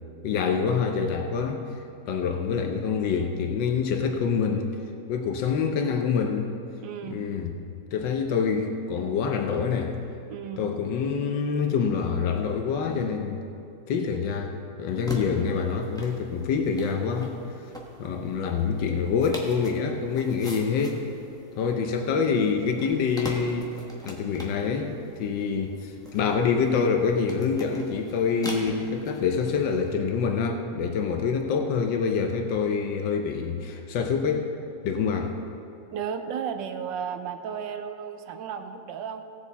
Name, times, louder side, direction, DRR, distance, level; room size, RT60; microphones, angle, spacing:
voice 1, 0.2-1.6 2.1-4.7 5.1-6.5 7.1-7.5 7.9-10.0 10.6-13.4 13.9-17.3 18.0-21.0 21.6-23.7 24.0-34.5 34.8-35.3, left 6 dB, 85° left, 4 dB, 1.5 m, -26 dB
voice 2, 6.8-7.3 10.3-10.7 35.9-39.2, right 7 dB, 90° right, 8 dB, 1.4 m, -34 dB
sound 1, 14.9-29.9, equal, 5° left, 0.9 m, -43 dB
17.5 x 7.1 x 4.1 m, 2.6 s
omnidirectional pair, 1.9 m